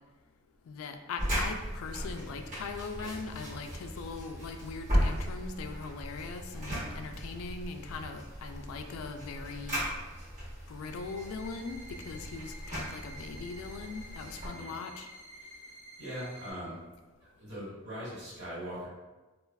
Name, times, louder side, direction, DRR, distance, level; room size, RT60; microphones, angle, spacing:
voice 1, 0.7-9.8 10.7-15.1, left 4 dB, 85° left, 7 dB, 0.3 m, -40 dB
sound 1, 1.2-14.5, equal, 40° right, 1.0 m, -37 dB
sound 2, 10.9-16.5, right 1 dB, 75° right, 1.2 m, -50 dB
voice 2, 16.0-16.8 17.2-18.9, equal, 55° right, -9 dB, 1.5 m, -41 dB
3.3 x 2.4 x 2.3 m, 1.2 s
head